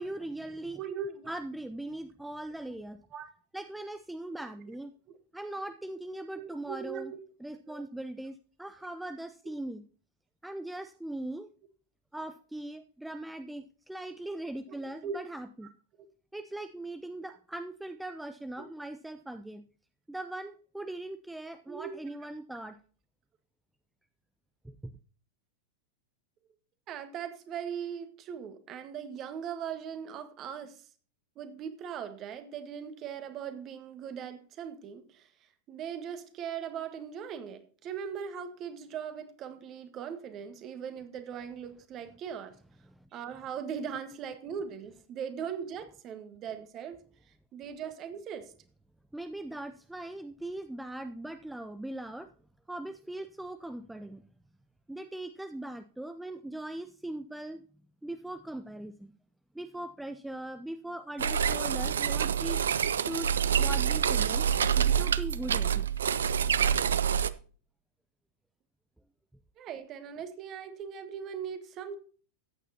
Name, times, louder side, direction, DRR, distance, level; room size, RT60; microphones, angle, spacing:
voice 1, 0.0-0.8 1.3-3.0 3.5-4.9 5.3-7.1 7.4-9.8 10.4-11.5 12.1-15.7 16.3-19.6 20.1-22.8 24.6-24.9 42.9-43.1 49.1-52.3 52.7-54.2 54.9-57.6 58.0-59.1 59.5-62.6 63.0-63.3 63.6-64.5 64.8-65.9, right 1 dB, 5° right, 10 dB, 0.5 m, -40 dB
voice 2, 0.7-1.3 2.6-2.7 3.1-3.3 6.4-7.2 7.7-7.8 14.7-14.8 15.0-15.2 18.6-18.7 21.7-21.9 26.9-30.9 31.3-35.3 35.7-42.5 43.1-47.0 47.5-48.5 69.6-71.9, right 7 dB, 35° right, 9 dB, 1.6 m, -39 dB
sound 1, 61.2-67.3, right 8 dB, 65° right, 0.5 m, -27 dB
14.0 x 9.1 x 2.8 m, 0.41 s
figure-of-eight pair, 90°, 0 cm